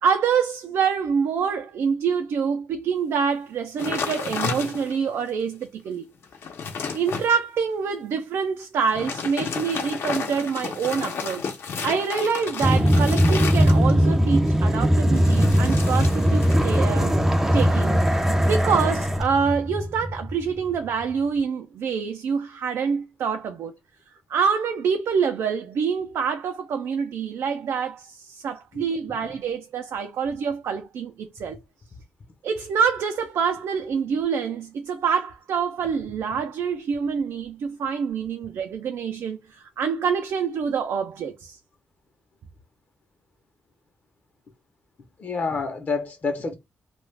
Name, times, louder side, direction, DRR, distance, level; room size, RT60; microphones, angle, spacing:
voice 1, 0.0-6.0 6.9-11.4 11.8-18.0 18.4-23.7 24.3-31.6 32.4-41.6, right 6 dB, 80° right, 0.5 m, -26 dB
sound 1, 3.8-5.1 5.6-5.7 6.1-7.3 8.8-14.1 15.1-16.8 17.1-17.5, left 5 dB, 70° left, 0.8 m, -32 dB
sound 2, 12.6-20.8, equal, 10° right, 0.4 m, -20 dB
voice 2, 45.2-46.5, left 4 dB, 40° left, 0.8 m, -28 dB
2.3 x 2.3 x 3.3 m
wide cardioid pair, 130°, 4 cm